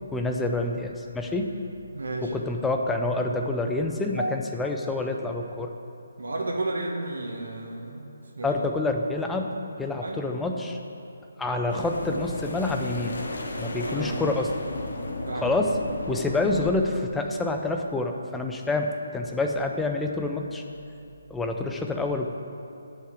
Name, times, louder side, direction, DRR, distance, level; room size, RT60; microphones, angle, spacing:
voice 1, 0.1-1.5 2.2-5.7 8.4-10.8 11.4-13.2 13.6-14.5 15.4-15.8 16.1-20.6 21.3-22.3, left 2 dB, 5° left, 2 dB, 0.5 m, -27 dB
voice 2, 1.9-2.3 4.1-4.4 6.2-8.6 10.0-10.2 13.8-14.2 15.2-15.5, right 2 dB, 90° right, -1 dB, 1.7 m, -32 dB
sound 1, 11.7-16.7, left 2 dB, 60° left, 1.4 m, -34 dB
11.5 x 5.7 x 8.3 m, 2.9 s
hypercardioid pair, 175°, 0 cm